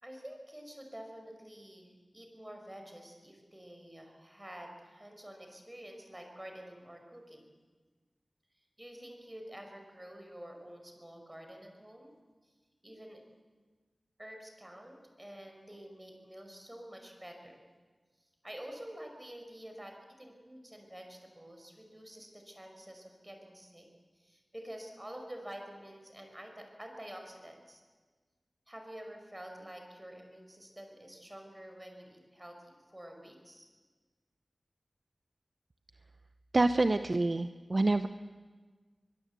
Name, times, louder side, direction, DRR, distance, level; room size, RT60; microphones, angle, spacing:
voice 1, 0.0-7.5 8.6-12.1 12.4-12.5 12.8-13.2 14.2-17.7 18.4-23.9 24.2-27.8 28.7-33.7, equal, 15° right, 3 dB, 5.2 m, -48 dB
voice 2, 36.5-38.1, right 2 dB, 45° right, 10 dB, 0.7 m, -27 dB
22.5 x 22.5 x 8.2 m, 1.4 s
wide cardioid pair, 70°, 0 cm